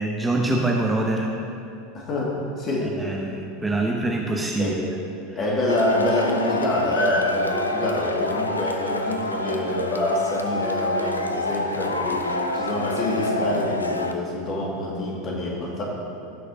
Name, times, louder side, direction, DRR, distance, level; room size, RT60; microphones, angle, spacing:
voice 1, 0.0-1.3 3.0-4.8 5.3-5.4, right 2 dB, 10° right, 0 dB, 0.8 m, -24 dB
voice 2, 1.9-2.9 3.7-4.0 4.6-4.8 5.4-12.3 12.5-15.8, left 1 dB, 35° left, -3 dB, 2.5 m, -26 dB
Wind instrument woodwind instrument, 5.3-14.1, equal, 15° left, 2.1 m, -39 dB
Male speech man speaking / Shout / Clapping, 5.7-14.1, left 2 dB, 85° left, 0.5 m, -27 dB
16.5 x 6.2 x 3.0 m, 2.6 s
figure-of-eight pair, 80°, 0 cm